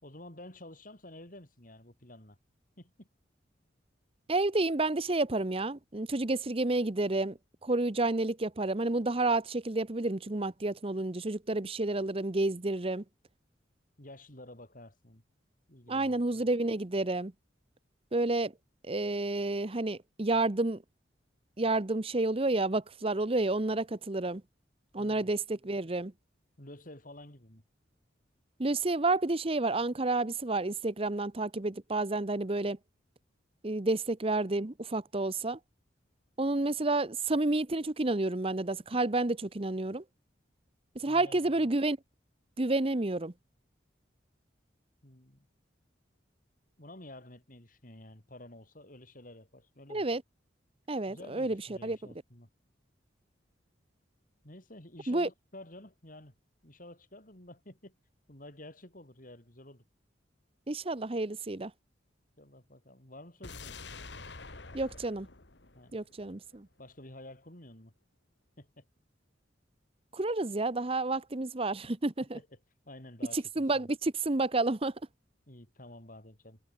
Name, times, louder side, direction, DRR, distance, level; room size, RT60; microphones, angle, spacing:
voice 1, 0.0-2.4 2.8-3.1 14.0-15.2 15.7-16.2 25.0-25.3 26.6-27.6 41.0-41.7 45.0-45.5 46.8-50.0 51.1-52.5 54.4-56.3 56.6-57.9 58.3-59.8 62.4-64.0 64.7-64.8 65.7-66.0 66.8-67.9 68.6-68.9 72.3-72.6 72.8-73.9 75.5-76.6, left 1 dB, 45° left, 4.7 m, -51 dB
voice 2, 4.3-13.0 15.9-17.3 18.1-18.5 18.8-20.8 21.6-24.4 24.9-26.1 28.6-32.8 33.6-35.6 36.4-40.0 40.9-42.0 42.6-43.3 49.9-50.2 50.9-52.0 55.1-55.3 60.7-61.7 64.7-65.3 65.9-66.7 70.1-72.4 73.3-74.9, right 2 dB, 30° right, 0.9 m, -30 dB
sound 1, 63.4-66.6 66.9-67.0, left 3 dB, 65° left, 2.2 m, -47 dB
head